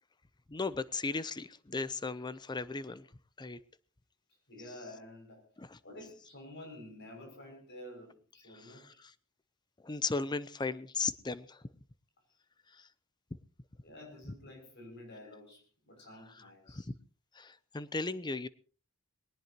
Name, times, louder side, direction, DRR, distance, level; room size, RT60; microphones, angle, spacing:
voice 1, 0.5-3.1 3.4-3.6 5.6-5.8 8.5-9.1 9.8-11.6 12.7-12.9 13.3-13.4 16.3-16.9 17.3-18.5, left 4 dB, 20° left, 15 dB, 0.6 m, -37 dB
voice 2, 4.5-5.4 5.8-9.0 13.8-16.9, left 1 dB, 55° left, 2 dB, 6.7 m, -50 dB
20.5 x 18.5 x 3.0 m, 0.40 s
head